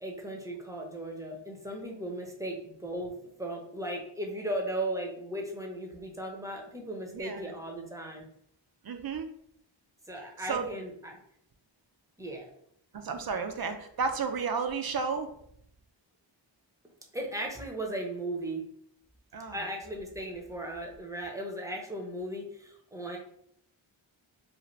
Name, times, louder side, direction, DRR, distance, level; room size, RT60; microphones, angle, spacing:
voice 1, 0.0-8.3 10.1-11.2 12.2-12.4 17.1-18.7 19.5-23.2, right 1 dB, 5° right, 1 dB, 0.7 m, -37 dB
voice 2, 7.1-7.5 8.8-9.3 10.5-10.7 13.0-15.3 19.3-19.6, right 5 dB, 50° right, 7 dB, 0.5 m, -32 dB
2.6 x 2.5 x 3.1 m, 0.69 s
wide cardioid pair, 45°, 48 cm